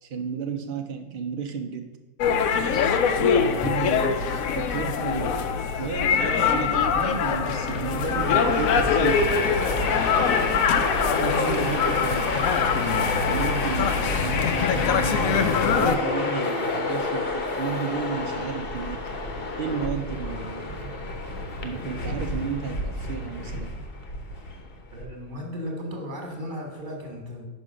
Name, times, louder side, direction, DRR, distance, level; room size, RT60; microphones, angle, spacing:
voice 1, 0.0-1.9 2.6-5.4 5.8-9.4 11.2-12.6 12.8-19.0 19.6-20.9 21.6-23.7, right 6 dB, 75° right, 5 dB, 0.5 m, -33 dB
sound 1, 2.2-16.0, left 6 dB, 70° left, 0.9 m, -23 dB
Train, 7.5-25.1, left 2 dB, 45° left, 0.9 m, -29 dB
voice 2, 24.9-27.4, equal, 35° right, 1 dB, 1.4 m, -35 dB
5.4 x 5.4 x 6.2 m, 1.2 s
omnidirectional pair, 1.7 m